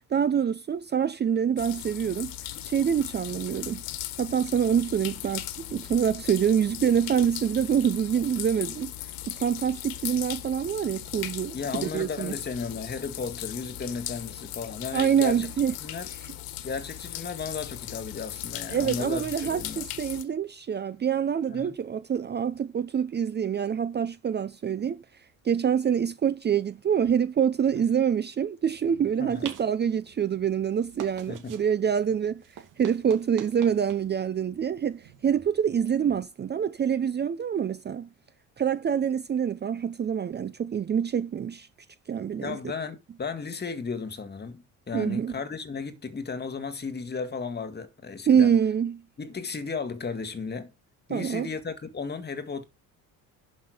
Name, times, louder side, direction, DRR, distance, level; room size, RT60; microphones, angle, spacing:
voice 1, 0.1-2.3 2.6-3.8 4.2-8.9 9.3-12.4 14.9-15.7 16.2-16.3 18.7-25.0 25.4-32.4 32.8-38.1 38.6-41.7 42.1-42.6 44.9-45.3 48.3-49.0 51.1-51.5, right 8 dB, 30° right, 0.6 m, -26 dB
sound 1, 1.6-20.2, left 14 dB, 75° left, 1.5 m, -38 dB
voice 2, 11.5-15.5 15.8-16.1 16.6-19.9 21.5-21.7 27.7-27.8 29.2-29.5 31.3-31.5 42.4-48.5 49.2-50.7 51.1-52.6, left 5 dB, 30° left, 2.0 m, -34 dB
sound 2, 28.7-36.2, right 9 dB, 60° right, 2.5 m, -47 dB
11.0 x 5.7 x 5.0 m
supercardioid pair, 95°, 35 cm